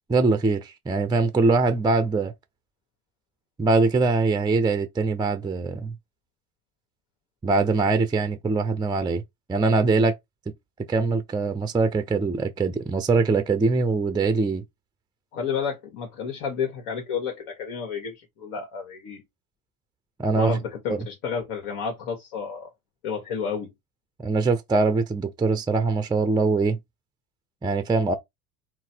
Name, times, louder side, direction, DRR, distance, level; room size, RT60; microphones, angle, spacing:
voice 1, 0.1-2.3 3.6-5.9 7.4-9.2 9.5-10.1 10.9-14.6 20.2-20.6 20.9-21.0 24.2-26.8 27.6-28.1, right 3 dB, 10° right, 0.5 m, -22 dB
voice 2, 15.3-19.2 20.3-22.7 23.0-23.7, left 6 dB, 65° left, 1.4 m, -31 dB
3.8 x 2.1 x 4.3 m
hypercardioid pair, 75°, 42 cm